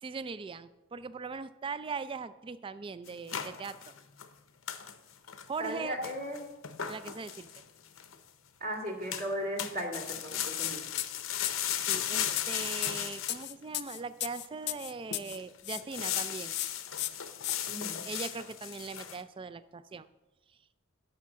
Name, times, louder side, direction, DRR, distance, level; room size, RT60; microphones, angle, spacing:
voice 1, 0.0-3.9 5.5-6.0 6.9-7.5 11.9-16.6 18.0-20.1, right 4 dB, 25° right, 14 dB, 0.3 m, -40 dB
sound 1, 3.1-4.3 4.7-4.9 5.3-5.7 6.0-8.2 9.1-9.3 9.6-13.5 14.0-14.1 14.7-14.8 15.1-15.4 15.8-19.2, left 10 dB, 85° left, 0.8 m, -36 dB
voice 2, 5.6-6.4 8.6-10.8 17.7-18.0, equal, 45° right, 1 dB, 2.1 m, -36 dB
sound 2, 10.5-10.7 11.0-15.4 15.6-16.2 16.5-16.7 17.0-17.6, left 15 dB, 55° left, 0.5 m, -35 dB
9.8 x 5.6 x 7.2 m, 1.1 s
head